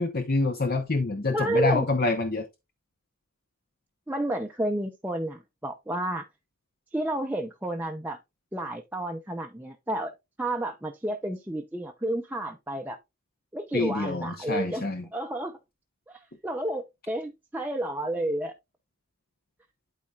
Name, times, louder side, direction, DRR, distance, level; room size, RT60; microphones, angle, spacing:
voice 1, 0.0-2.5 13.7-15.0, left 3 dB, 45° left, 0.9 m, -26 dB
voice 2, 1.3-1.9 4.1-6.2 6.9-8.2 8.5-10.1 10.4-13.0 13.5-14.9 15.1-15.6 16.1-18.5, right 1 dB, 10° right, 0.6 m, -31 dB
12.0 x 4.2 x 2.4 m
head